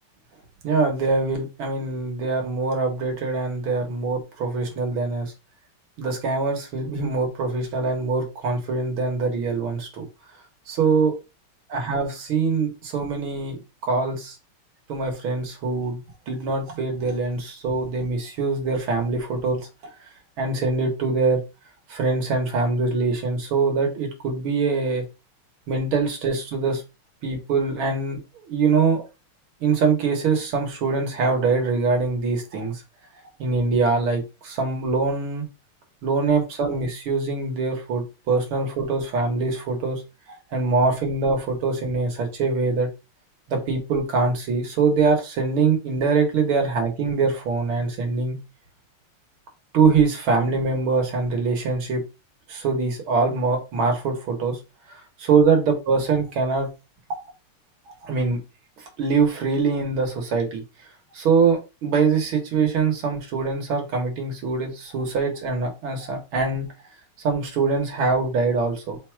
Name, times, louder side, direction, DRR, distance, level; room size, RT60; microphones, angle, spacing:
voice 1, 0.6-5.3 6.0-10.0 10.7-11.1 11.7-13.6 13.8-14.4 14.9-19.6 20.4-21.4 21.9-25.0 25.7-26.8 27.2-29.0 29.6-32.8 33.4-35.5 36.0-40.0 40.3-42.9 43.5-48.4 49.7-52.0 52.5-54.6 54.9-56.7 58.0-58.4 58.8-60.6 61.1-66.7 67.2-69.0, right 4 dB, 70° right, 2 dB, 1.9 m, -23 dB
4.0 x 2.3 x 4.3 m, 0.28 s
omnidirectional pair, 2.4 m